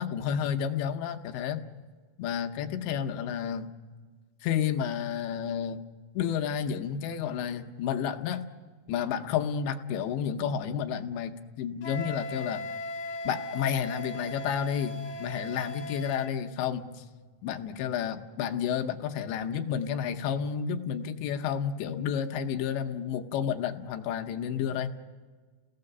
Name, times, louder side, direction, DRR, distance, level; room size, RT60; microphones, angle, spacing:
voice 1, 0.0-1.6 2.2-3.7 4.4-5.8 6.1-8.4 8.9-12.6 13.2-17.0 17.4-24.9, left 8 dB, 75° left, 5 dB, 2.9 m, -31 dB
Wind instrument woodwind instrument, 11.8-16.4, left 1 dB, 60° left, 2.1 m, -38 dB
29.5 x 18.0 x 6.7 m, 1.4 s
omnidirectional pair, 5.7 m